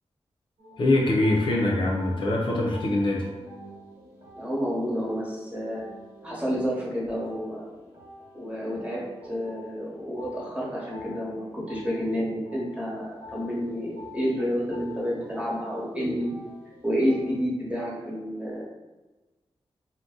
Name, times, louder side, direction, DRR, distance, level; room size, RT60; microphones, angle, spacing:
sound 1, 0.6-17.4, left 2 dB, 30° right, 1.3 m, -47 dB
voice 1, 0.8-3.3, left 1 dB, 50° left, -2 dB, 0.5 m, -23 dB
voice 2, 4.3-5.8 6.2-7.6 8.3-16.3 16.8-18.7, equal, 10° right, -6 dB, 1.2 m, -29 dB
2.5 x 2.1 x 3.8 m, 1.1 s
cardioid pair, 65°, 11 cm